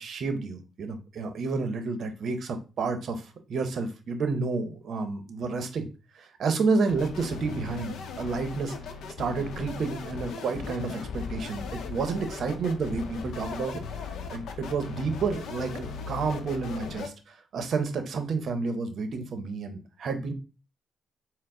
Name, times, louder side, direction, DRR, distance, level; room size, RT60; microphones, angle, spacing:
voice 1, 0.0-3.2 3.5-5.9 6.1-8.7 9.2-13.8 14.3-20.3, right 4 dB, 60° right, 8 dB, 0.8 m, -30 dB
sound 1, 6.9-17.1, left 5 dB, 75° left, 0.6 m, -38 dB
4.4 x 2.0 x 3.7 m, 0.32 s
cardioid pair, 90°, 0 cm